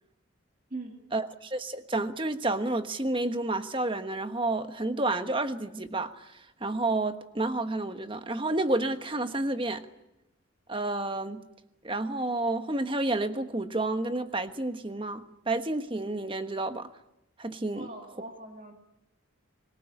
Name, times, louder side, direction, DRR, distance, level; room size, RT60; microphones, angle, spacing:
voice 1, 1.1-9.9 10.7-11.4 11.8-16.9 17.4-17.9, right 2 dB, 25° right, 1.3 m, -30 dB
voice 2, 17.7-18.7, right 2 dB, 40° right, 2.5 m, -41 dB
24.5 x 21.0 x 9.8 m
head